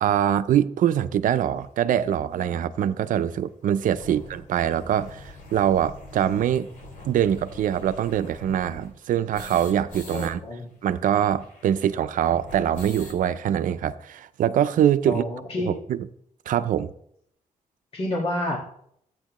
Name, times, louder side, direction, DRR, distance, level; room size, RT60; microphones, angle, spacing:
voice 1, 0.0-6.7 7.1-10.4 10.8-15.3 15.6-16.1 16.5-16.9, right 10 dB, 75° right, 0.6 m, -23 dB
sound 1, 1.6-1.7 2.4-2.5 2.8-2.9 3.1-3.2 3.6-10.3 10.6-10.7 10.9-13.2, left 2 dB, 80° left, 2.9 m, -44 dB
voice 2, 10.1-10.7 15.1-15.7 17.9-18.6, left 1 dB, 45° left, 1.7 m, -28 dB
14.0 x 8.9 x 3.1 m
cardioid pair, 140°, 14 cm